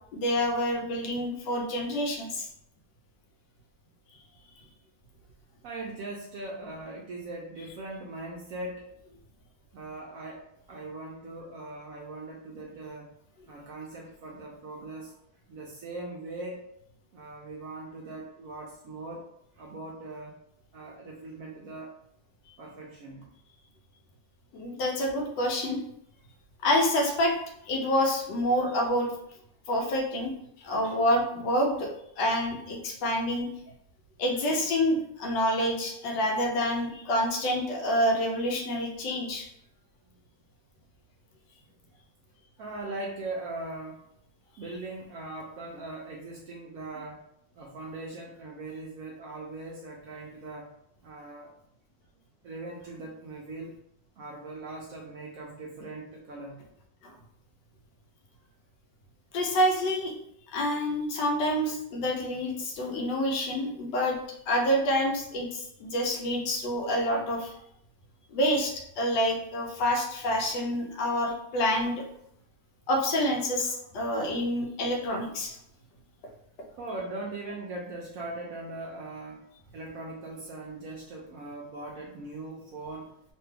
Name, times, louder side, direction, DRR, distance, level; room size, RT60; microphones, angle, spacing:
voice 1, 0.1-2.5 24.5-25.8 26.6-27.3 27.6-29.1 29.7-30.3 30.6-31.9 32.2-33.5 34.2-39.5 59.3-60.1 60.5-64.2 64.5-67.5 68.3-72.0 72.9-75.6, equal, 85° left, 1 dB, 1.4 m, -27 dB
voice 2, 5.6-8.9 9.7-10.4 10.7-13.1 13.5-15.2 15.5-16.7 17.1-19.3 19.5-20.4 20.7-22.0 22.6-23.3 42.6-44.0 44.6-47.2 47.5-50.7 51.0-51.5 52.4-53.8 54.2-56.6 73.6-74.0 76.8-79.4 79.7-83.1, right 2 dB, 70° right, -2 dB, 0.8 m, -40 dB
3.3 x 2.2 x 3.2 m, 0.72 s
omnidirectional pair, 1.9 m